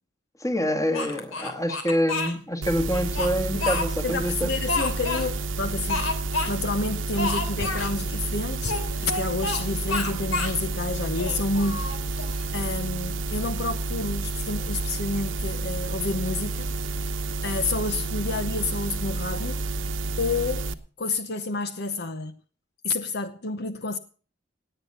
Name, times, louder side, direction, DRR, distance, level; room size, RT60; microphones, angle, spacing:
voice 1, 0.4-4.5, equal, 15° left, 1.7 m, -26 dB
Speech, 0.9-2.3 2.9-4.2 4.7-5.3 5.9-6.5 6.8-6.9 7.2-7.9 8.6-9.6 9.9-10.6 11.1-12.4, left 3 dB, 90° left, 3.0 m, -29 dB
sound 1, 2.6-20.7, right 3 dB, 75° right, 1.0 m, -30 dB
voice 2, 4.0-6.2 6.5-11.9 12.5-16.7 17.4-19.6 20.2-20.7 21.0-22.4 22.8-24.0, left 3 dB, 55° left, 0.9 m, -29 dB
18.5 x 8.9 x 5.6 m
head